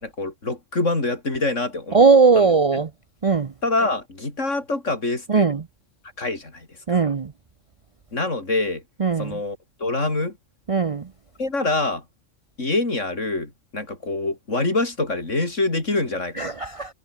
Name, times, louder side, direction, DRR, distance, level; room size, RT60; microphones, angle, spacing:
voice 1, 0.0-2.0 2.3-2.5 2.7-2.8 3.6-5.5 6.2-7.0 8.1-8.8 9.2-10.4 11.4-12.0 12.6-16.5, left 2 dB, 60° left, 4.6 m, -25 dB
voice 2, 1.9-2.9 3.2-3.5 5.3-5.6 6.9-7.3 9.0-9.4 10.7-11.1 16.4-16.9, right 4 dB, 40° right, 0.5 m, -18 dB
omnidirectional pair, 1.4 m